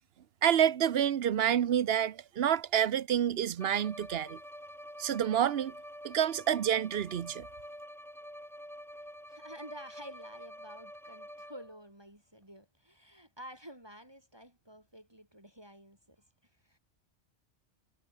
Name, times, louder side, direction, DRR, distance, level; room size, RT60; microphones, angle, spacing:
voice 1, 0.4-4.4 5.0-5.7 6.0-7.5, right 9 dB, 65° right, 0.9 m, -28 dB
Bowed string instrument, 3.6-11.8, equal, ahead, 5.7 m, -48 dB
voice 2, 9.0-16.8, equal, 20° right, 3.7 m, -51 dB
omnidirectional pair, 1.2 m